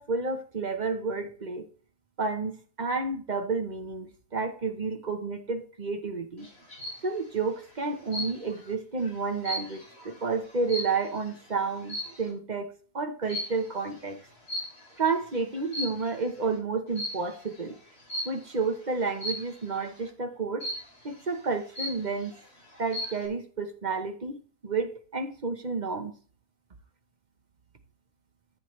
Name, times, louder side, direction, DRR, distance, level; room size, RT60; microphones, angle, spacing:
voice 1, 0.0-1.7 2.2-6.5 7.0-12.7 12.9-14.2 15.0-17.8 18.2-20.7 21.0-22.3 22.8-24.4 24.6-26.1, right 4 dB, 35° right, 1.1 m, -31 dB
sound 1, 6.4-7.1 8.1-8.6 9.0-11.3 11.8-12.3 13.3-13.7 14.5-15.1 15.6-16.3 17.0-17.3 18.1-18.5 19.2-19.6 20.6-21.1 21.5-21.6 21.8-22.4 22.7-23.3, equal, 45° left, 4.3 m, -35 dB
14.5 x 7.6 x 3.2 m
omnidirectional pair, 1.5 m